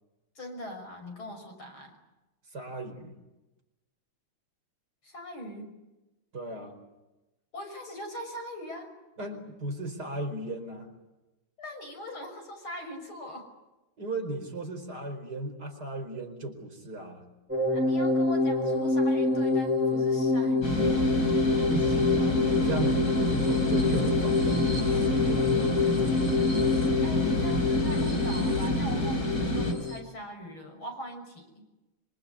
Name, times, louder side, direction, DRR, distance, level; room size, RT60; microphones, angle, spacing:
voice 1, 0.4-1.9 5.0-5.8 7.5-8.9 11.6-13.5 17.7-21.4 27.0-31.6, equal, 90° left, 4 dB, 7.2 m, -41 dB
voice 2, 2.5-3.2 6.3-6.7 9.2-10.9 14.0-17.3 20.8-20.9 21.7-26.1, right 1 dB, 50° right, 4 dB, 5.3 m, -37 dB
sound 1, 17.5-30.0, left 3 dB, 5° right, 7.5 m, -27 dB
sound 2, 20.6-29.7, left 1 dB, 45° left, 4.9 m, -28 dB
26.0 x 25.5 x 8.6 m, 1.0 s
omnidirectional pair, 2.2 m